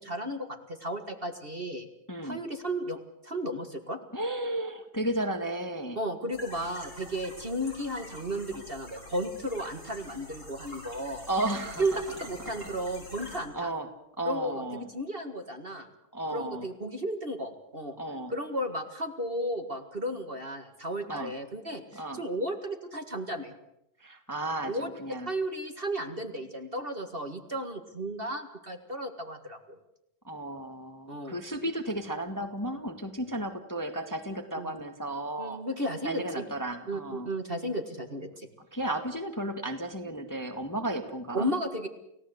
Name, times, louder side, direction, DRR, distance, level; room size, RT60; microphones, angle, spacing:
voice 1, 0.0-1.9 2.2-4.0 6.0-11.3 11.8-13.7 14.3-15.9 16.3-18.0 18.3-23.5 24.7-24.9 25.3-29.8 31.1-31.4 34.6-34.7 35.4-36.4 36.9-38.5 41.3-41.9, right 1 dB, 30° right, 6 dB, 2.0 m, -34 dB
voice 2, 2.1-2.4 4.1-6.0 11.3-12.0 12.4-12.7 13.5-13.9 14.2-14.9 16.1-16.7 18.0-18.3 21.1-21.3 21.9-22.2 24.0-25.3 30.2-35.6 36.0-37.3 38.7-41.5, right 1 dB, 10° left, 6 dB, 1.7 m, -34 dB
sound 1, 6.3-13.4, left 1 dB, 35° left, 8.1 m, -46 dB
30.0 x 17.0 x 8.1 m, 0.82 s
omnidirectional pair, 2.1 m